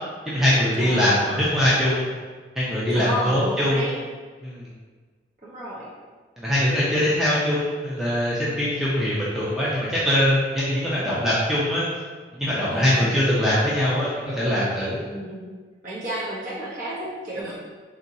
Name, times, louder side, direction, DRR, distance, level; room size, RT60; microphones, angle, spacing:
voice 1, 0.3-2.1 2.6-3.9 4.4-4.7 6.4-11.9 12.3-15.0, left 1 dB, ahead, -9 dB, 0.6 m, -22 dB
voice 2, 0.8-1.5 2.9-4.0 5.4-5.9 12.7-13.1 15.0-15.5 15.8-17.5, equal, 45° right, -8 dB, 1.2 m, -32 dB
3.5 x 2.9 x 4.0 m, 1.5 s
head